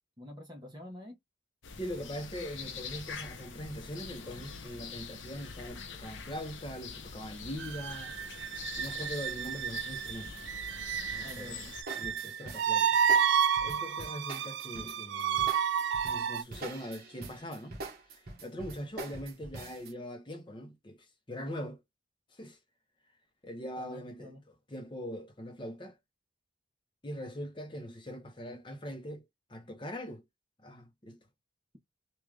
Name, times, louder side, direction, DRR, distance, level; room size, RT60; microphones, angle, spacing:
voice 1, 0.2-1.2 11.2-11.7 23.8-24.4, left 1 dB, 20° right, 0.9 m, -47 dB
sound 1, 1.6-11.8, left 5 dB, 75° left, 0.7 m, -45 dB
voice 2, 1.8-8.2 8.8-10.4 11.0-11.6 11.9-13.0 13.6-15.6 16.0-17.8 18.1-21.8 22.3-22.6 23.4-26.0 27.0-29.2 29.5-30.2 30.6-31.2, equal, 25° left, 0.7 m, -42 dB
sound 2, 7.3-7.9 8.2-10.7 11.0-19.9, right 3 dB, 50° right, 1.2 m, -45 dB
sound 3, 7.6-16.4, right 8 dB, 65° right, 0.3 m, -31 dB
3.6 x 2.3 x 3.2 m
head